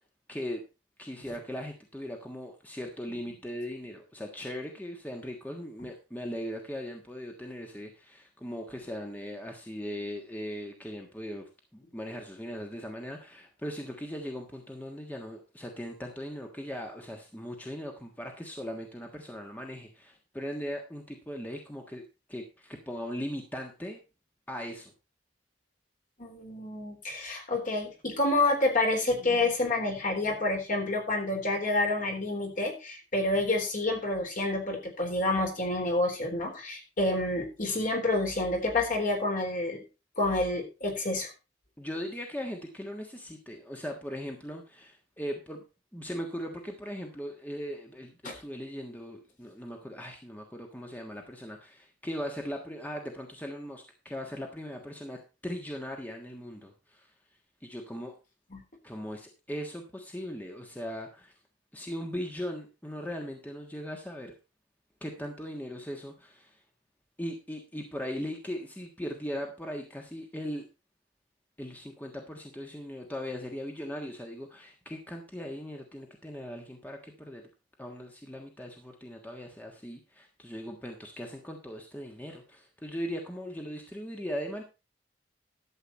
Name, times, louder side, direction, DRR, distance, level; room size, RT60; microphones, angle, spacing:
voice 1, 0.3-0.6 1.0-22.0 22.3-24.0 24.5-24.9 41.8-45.6 45.9-57.1 57.6-58.1 58.8-61.3 61.7-64.3 65.0-66.6 67.2-70.6 71.6-77.5 77.8-84.6, equal, 10° left, 2 dB, 1.5 m, -39 dB
voice 2, 26.2-39.8 40.2-41.3 48.2-48.4 58.5-58.6, left 2 dB, 45° left, 2 dB, 3.7 m, -28 dB
12.5 x 7.9 x 4.2 m, 0.29 s
head